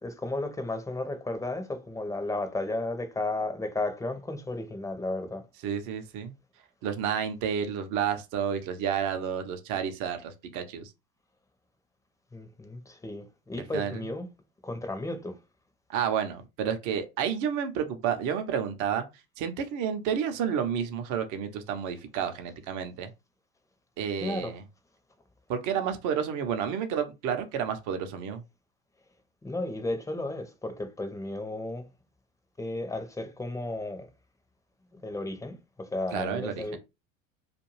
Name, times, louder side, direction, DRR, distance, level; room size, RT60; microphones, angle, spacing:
voice 1, 0.0-5.4 12.3-14.3 14.6-15.4 24.2-24.5 29.4-31.9 32.6-34.1 34.9-36.8, left 2 dB, 10° left, 0.6 m, -34 dB
voice 2, 5.6-6.3 6.8-10.9 13.7-14.0 15.9-19.1 19.4-23.1 24.0-24.6 25.5-28.4 36.1-36.8, right 8 dB, 50° right, 0.7 m, -30 dB
2.5 x 2.3 x 3.1 m
hypercardioid pair, 80°, 40 cm